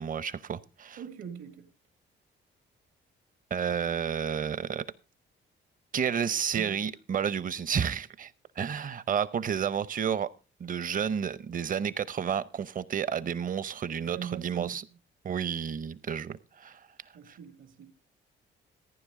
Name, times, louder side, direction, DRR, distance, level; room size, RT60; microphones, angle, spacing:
voice 1, 0.0-1.0 3.5-4.8 5.9-8.3 8.6-10.3 10.6-14.8 15.2-16.8 17.3-17.4, right 7 dB, 45° right, 0.7 m, -31 dB
voice 2, 1.0-1.7 6.5-6.8 14.0-15.0 17.1-17.9, right 8 dB, 80° right, 2.0 m, -42 dB
15.0 x 9.7 x 3.7 m
cardioid pair, 90°, 20 cm